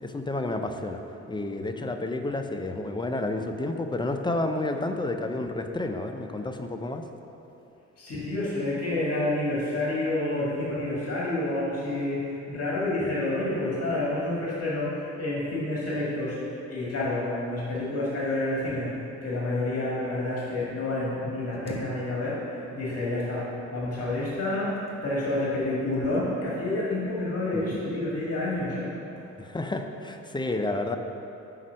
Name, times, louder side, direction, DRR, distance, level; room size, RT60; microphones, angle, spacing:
voice 1, 0.0-1.0 1.3-7.0 27.5-27.6 29.4-31.0, left 2 dB, 15° left, 5 dB, 0.5 m, -30 dB
voice 2, 8.0-18.9 19.2-22.4 22.7-28.9, left 2 dB, 50° left, -6 dB, 1.8 m, -29 dB
sound 1, 21.5-22.6 22.9-23.6 24.5-25.3 25.9-26.3 26.7-27.0, right 1 dB, 20° right, 0.8 m, -45 dB
5.8 x 5.2 x 6.4 m, 2.9 s
cardioid pair, 90°, 30 cm